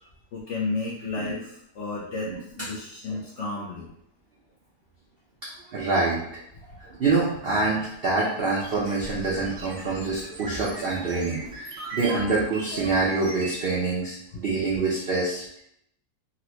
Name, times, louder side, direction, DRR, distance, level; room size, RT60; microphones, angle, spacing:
voice 1, 0.3-2.3 2.7-3.9, left 3 dB, 75° left, -4 dB, 0.6 m, -32 dB
voice 2, 2.3-2.7 3.1-3.2 5.7-6.2 6.8-15.6, right 3 dB, 80° right, -5 dB, 0.5 m, -26 dB
sound 1, 8.2-13.7, right 2 dB, 50° right, 0.9 m, -39 dB
4.0 x 2.0 x 2.8 m, 0.74 s
omnidirectional pair, 1.7 m